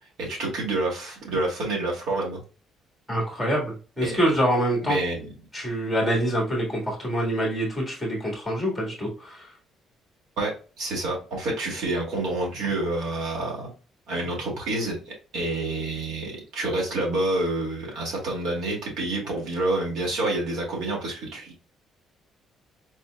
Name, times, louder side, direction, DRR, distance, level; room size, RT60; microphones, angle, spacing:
voice 1, 0.2-2.4 4.0-4.3 4.8-5.3 10.4-13.7 14.1-21.6, right 2 dB, 65° right, -2 dB, 2.3 m, -28 dB
voice 2, 3.1-5.0 5.5-9.5, equal, 5° right, -3 dB, 1.7 m, -25 dB
4.4 x 4.2 x 2.3 m, 0.36 s
cardioid pair, 170°, 0 cm